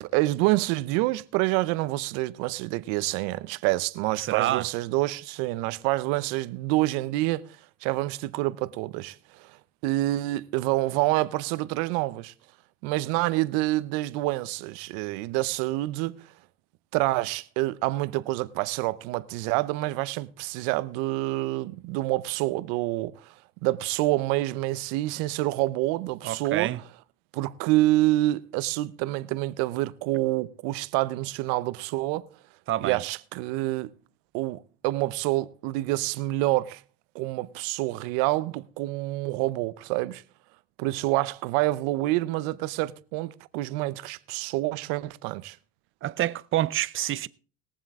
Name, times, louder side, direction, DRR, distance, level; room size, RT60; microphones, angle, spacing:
voice 1, 0.0-9.6 9.8-12.3 12.8-16.3 16.9-23.3 23.6-26.7 27.3-32.3 32.8-33.9 34.3-36.8 37.1-40.2 40.8-45.6, right 18 dB, 85° right, 0.7 m, -27 dB
voice 2, 4.2-4.7 26.2-26.8 32.7-33.0 46.0-47.3, right 13 dB, 35° right, 0.5 m, -27 dB
20.5 x 7.5 x 3.6 m
cardioid pair, 130°, 35 cm